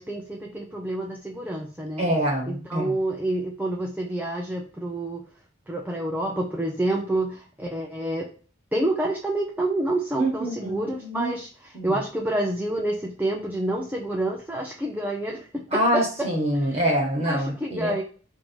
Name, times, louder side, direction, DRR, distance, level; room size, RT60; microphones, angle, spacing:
voice 1, 0.0-2.1 2.5-5.2 5.7-8.3 8.7-16.3 16.6-16.8 17.3-18.0, right 1 dB, 10° right, 0 dB, 0.4 m, -28 dB
voice 2, 2.0-3.0 10.2-11.3 11.7-12.0 15.7-17.9, right 1 dB, 30° right, 0 dB, 1.2 m, -25 dB
4.5 x 2.7 x 4.4 m, 0.39 s
head